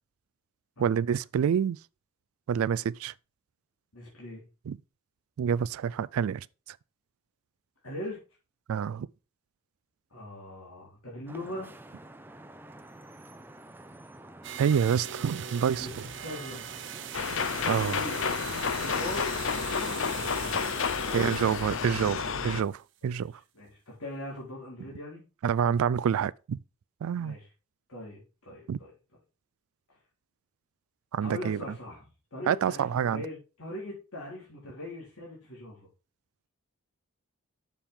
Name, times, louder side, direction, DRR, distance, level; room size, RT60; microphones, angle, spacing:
voice 1, 0.8-1.8 2.5-3.1 4.7-4.8 5.4-6.8 8.7-9.1 14.6-15.9 17.7-18.0 21.1-23.3 25.4-26.6 27.0-27.4 28.7-28.8 31.1-31.6 32.5-33.2, right 7 dB, 70° right, 0.3 m, -27 dB
voice 2, 3.9-4.4 7.8-8.2 10.1-11.7 15.7-16.7 17.5-18.3 18.6-19.2 19.5-21.6 23.0-23.2 23.6-25.2 27.2-27.5 27.9-28.9 31.2-35.9, left 1 dB, 80° left, 3.7 m, -41 dB
Vehicle horn car horn honking / Traffic noise roadway noise, 11.3-21.2, right 1 dB, 10° right, 0.5 m, -50 dB
sound 1, 14.4-22.8, right 9 dB, 55° right, 0.8 m, -41 dB
sound 2, 17.1-22.6, left 6 dB, 60° left, 0.6 m, -30 dB
7.2 x 6.9 x 3.6 m
head